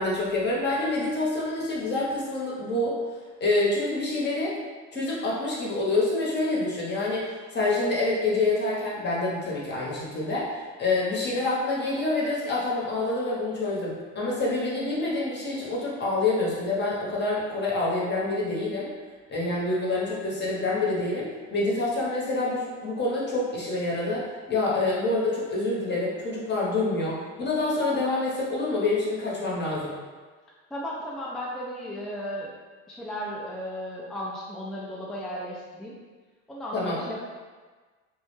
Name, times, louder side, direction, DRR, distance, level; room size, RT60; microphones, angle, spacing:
voice 1, 0.0-3.0 3.4-4.5 4.9-7.3 7.5-18.9 19.3-29.9 36.7-37.0, left 2 dB, 35° left, -5 dB, 0.8 m, -27 dB
voice 2, 30.7-32.5 32.9-36.0 36.5-37.2, equal, ahead, -6 dB, 0.3 m, -35 dB
2.2 x 2.1 x 3.1 m, 1.4 s
supercardioid pair, 95°, 32 cm